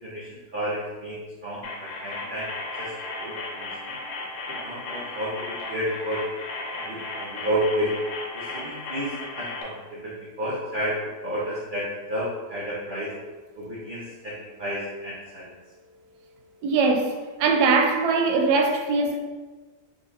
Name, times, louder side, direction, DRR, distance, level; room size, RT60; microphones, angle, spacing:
voice 1, 0.0-2.5 2.8-4.0 4.5-6.3 6.7-7.9 8.3-13.1 13.6-15.5, equal, 70° right, 0.4 m, -31 dB
sound 1, 1.6-9.6, left 2 dB, 85° left, 1.2 m, -35 dB
voice 2, 16.6-19.2, right 4 dB, 90° right, 1.1 m, -21 dB
3.8 x 3.2 x 2.5 m
omnidirectional pair, 1.7 m